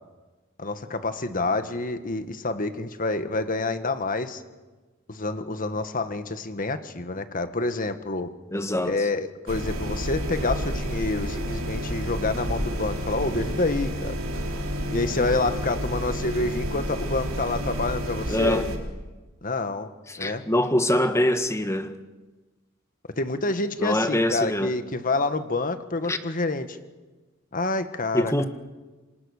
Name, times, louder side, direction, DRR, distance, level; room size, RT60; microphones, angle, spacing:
voice 1, 0.6-4.4 5.1-8.3 8.9-14.2 14.9-18.6 19.4-19.9 20.2-20.4 23.2-26.8 27.5-28.4, left 2 dB, 45° left, 1.7 m, -28 dB
voice 2, 8.5-8.9 18.3-18.7 20.1-21.9 23.8-24.7 26.1-26.2 28.1-28.4, left 1 dB, 15° left, 1.6 m, -24 dB
sound 1, 9.5-18.8, equal, 85° right, 4.2 m, -30 dB
28.0 x 26.0 x 6.7 m
head